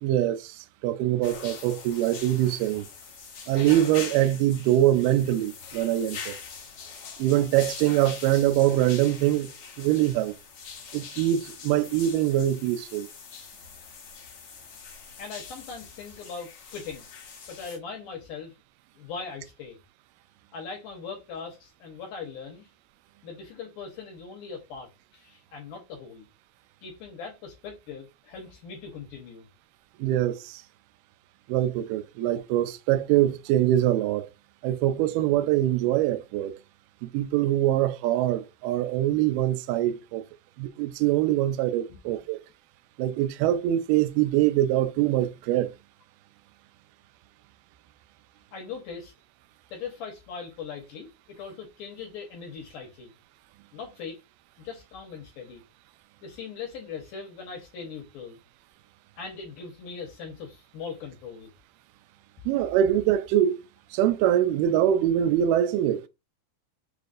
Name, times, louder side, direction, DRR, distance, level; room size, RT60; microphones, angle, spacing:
voice 1, 0.0-2.9 3.5-6.4 7.2-9.5 9.8-10.3 10.9-13.1 30.0-30.6 31.5-34.3 34.6-36.6 37.0-40.2 40.6-42.4 43.0-45.7 62.5-63.6 63.9-66.0, right 12 dB, 85° right, 1.9 m, -24 dB
sound 1, 1.2-17.8, left 6 dB, 85° left, 1.2 m, -43 dB
voice 2, 15.2-17.1 17.5-18.5 19.0-19.8 20.5-22.7 23.2-26.3 26.8-29.5 41.9-42.0 48.5-49.1 49.7-53.1 53.7-54.2 54.6-55.6 56.2-58.4 59.2-61.5, left 5 dB, 70° left, 2.3 m, -40 dB
6.4 x 2.5 x 2.4 m
omnidirectional pair, 4.3 m